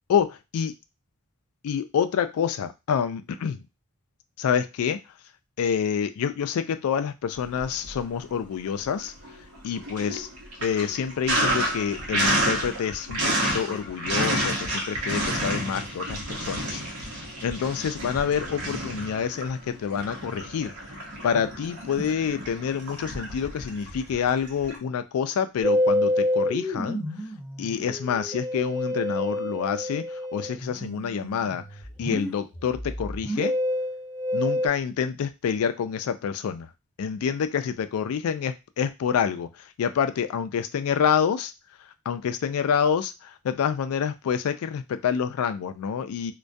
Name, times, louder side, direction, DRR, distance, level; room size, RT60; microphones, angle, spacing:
voice 1, 0.1-0.7 1.6-3.6 4.4-5.0 5.6-9.1 9.6-10.3 10.6-16.8 17.4-20.7 21.2-27.0 27.6-31.6 32.0-33.5 34.3-36.7 37.0-39.5 39.8-41.5 42.1-46.3, left 7 dB, 70° left, 10 dB, 0.3 m, -27 dB
Sink (filling or washing), 7.4-8.3 8.7-24.8, right 1 dB, 80° right, 0.8 m, -30 dB
Musical instrument, 25.6-34.7, left 1 dB, 10° right, 0.8 m, -28 dB
2.2 x 2.2 x 2.5 m, 0.25 s
head